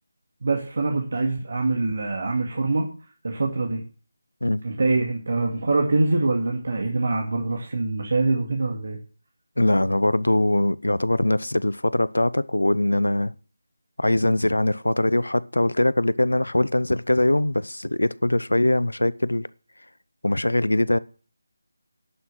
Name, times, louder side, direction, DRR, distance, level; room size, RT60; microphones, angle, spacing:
voice 1, 0.4-2.9 3.2-3.8 4.6-9.0, right 3 dB, 55° right, 2.2 m, -24 dB
voice 2, 9.6-13.3 14.0-19.5 20.2-21.0, left 1 dB, 80° left, 0.6 m, -22 dB
11.0 x 6.5 x 7.7 m
figure-of-eight pair, 160°, 0 cm